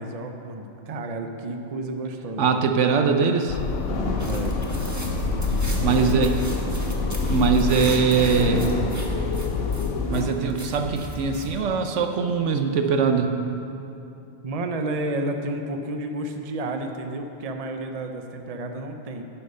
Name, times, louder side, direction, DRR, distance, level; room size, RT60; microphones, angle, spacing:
voice 1, 0.0-2.6 4.2-4.6 5.7-6.3 14.4-19.2, right 2 dB, 35° right, 5 dB, 0.7 m, -31 dB
voice 2, 2.4-3.6 5.8-6.3 7.3-8.6 10.1-13.3, right 5 dB, 75° right, 6 dB, 1.1 m, -22 dB
sound 1, 3.5-10.1, left 4 dB, 80° left, 1.0 m, -27 dB
sound 2, 3.9-10.3, left 2 dB, 55° left, 1.3 m, -33 dB
sound 3, 4.2-11.6, right 1 dB, 15° right, 1.2 m, -35 dB
10.5 x 10.0 x 5.5 m, 2.8 s
omnidirectional pair, 1.3 m